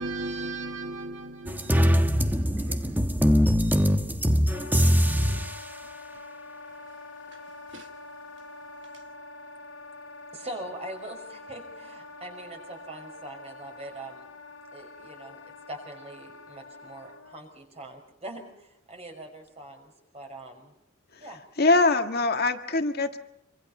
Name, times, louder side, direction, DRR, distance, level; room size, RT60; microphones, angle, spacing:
voice 1, 0.0-2.1 2.6-2.9 7.7-7.8, right 2 dB, 60° right, 1.4 m, -36 dB
sound 1, 1.5-5.5, equal, 10° right, 1.3 m, -22 dB
Wind instrument woodwind instrument, 4.5-17.4, left 3 dB, 80° left, 3.2 m, -45 dB
voice 2, 10.3-14.3 14.7-20.7 21.2-21.4, right 1 dB, 30° right, 5.6 m, -42 dB
voice 3, 21.6-23.2, left 3 dB, 50° left, 1.7 m, -22 dB
26.5 x 25.0 x 5.5 m
head